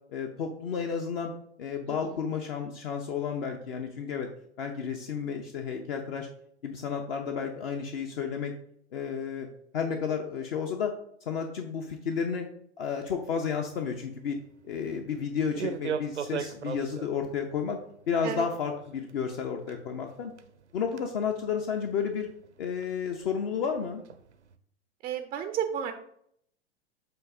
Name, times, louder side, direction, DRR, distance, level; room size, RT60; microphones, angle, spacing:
voice 1, 0.1-1.3 1.6-4.3 4.6-6.3 6.6-8.5 8.9-9.5 9.7-10.9 11.3-12.5 12.8-14.4 14.6-17.8 18.1-20.3 20.7-22.3 22.6-24.0, left 6 dB, 55° left, 3 dB, 0.8 m, -32 dB
sound 1, 13.1-24.6, right 7 dB, 80° right, 0.6 m, -42 dB
voice 2, 25.0-25.9, right 9 dB, 15° right, 6 dB, 0.3 m, -32 dB
7.7 x 2.6 x 4.8 m, 0.69 s
figure-of-eight pair, 95°, 34 cm